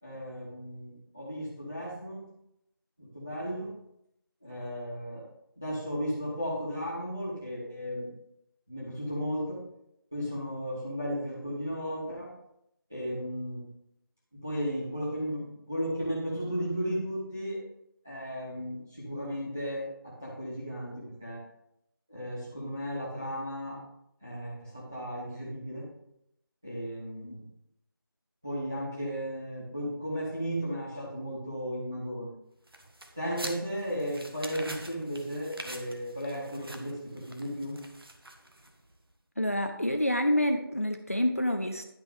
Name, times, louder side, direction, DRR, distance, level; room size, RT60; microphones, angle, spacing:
voice 1, 0.0-2.2 3.0-3.7 4.4-5.2 5.6-8.1 8.7-9.6 10.1-12.3 12.9-13.6 14.4-17.6 18.0-21.4 22.1-23.7 24.2-25.9 26.6-27.4 28.4-32.3 33.2-37.8, equal, 5° right, -10 dB, 1.0 m, -35 dB
sound 1, 32.7-38.9, right 1 dB, 75° right, 1.4 m, -45 dB
voice 2, 39.4-41.8, left 1 dB, 40° left, 6 dB, 0.4 m, -27 dB
10.5 x 5.8 x 3.5 m, 0.79 s
figure-of-eight pair, 180°, 12 cm